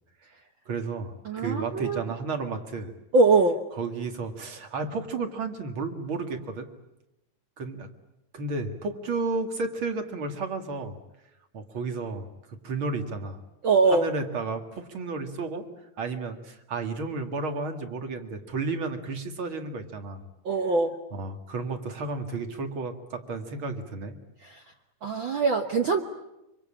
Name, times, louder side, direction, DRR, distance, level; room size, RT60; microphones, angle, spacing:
voice 1, 0.7-2.9 3.7-6.7 7.6-7.9 8.3-11.0 11.5-12.3 12.6-13.4 13.9-15.7 16.0-20.2 21.1-24.2, right 3 dB, 45° right, 6 dB, 2.3 m, -32 dB
voice 2, 1.2-2.0 3.1-3.6 13.6-14.1 20.4-20.9 24.4-24.6 25.0-26.0, right 3 dB, 60° right, 5 dB, 1.3 m, -22 dB
25.0 x 25.0 x 8.8 m, 0.91 s
omnidirectional pair, 3.8 m